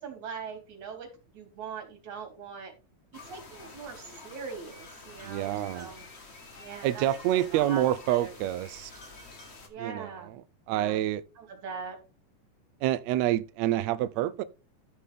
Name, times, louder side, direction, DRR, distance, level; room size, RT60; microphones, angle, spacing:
voice 1, 0.0-2.7 3.1-6.1 6.6-8.3 9.7-10.4 10.7-11.1 11.4-12.0, right 5 dB, 60° right, 4.1 m, -41 dB
sound 1, 3.1-9.7, left 3 dB, 35° left, 1.0 m, -48 dB
voice 2, 5.2-5.9 6.8-8.9 9.8-10.1 10.7-11.2 12.8-14.4, right 13 dB, 90° right, 1.5 m, -27 dB
13.5 x 6.7 x 3.6 m
omnidirectional pair, 3.9 m